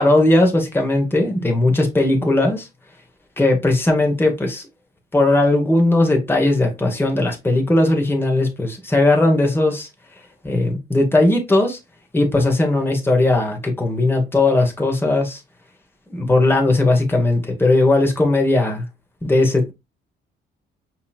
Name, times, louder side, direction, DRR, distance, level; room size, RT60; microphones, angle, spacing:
voice 1, 0.0-2.7 3.4-4.6 5.1-9.9 10.4-11.8 12.1-15.4 16.1-18.9 19.2-19.7, left 2 dB, 10° left, 1.3 m, -18 dB
5.3 x 2.9 x 2.4 m
cardioid pair, 90°, 20 cm